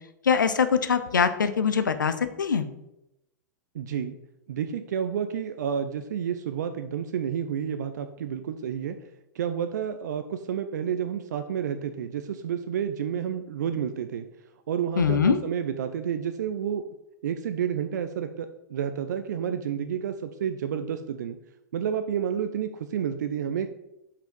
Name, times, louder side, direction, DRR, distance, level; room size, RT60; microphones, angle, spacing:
voice 1, 0.2-2.7 15.0-15.4, left 6 dB, 75° left, 11 dB, 0.6 m, -23 dB
voice 2, 3.7-4.2 4.5-9.0 9.3-14.3 14.7-16.8 17.2-21.4 21.7-23.7, right 8 dB, 65° right, 9 dB, 0.5 m, -30 dB
5.5 x 5.0 x 5.2 m, 0.88 s
figure-of-eight pair, 100°, 10 cm